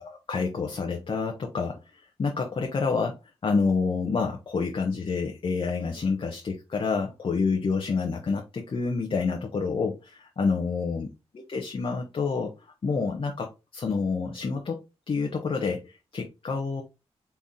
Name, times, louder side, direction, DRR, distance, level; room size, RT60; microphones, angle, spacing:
voice 1, 0.0-3.2 3.4-12.5 12.8-14.8 15.1-16.8, left 4 dB, 50° left, 2 dB, 0.9 m, -28 dB
4.2 x 3.4 x 3.7 m, 0.27 s
cardioid pair, 65°, 11 cm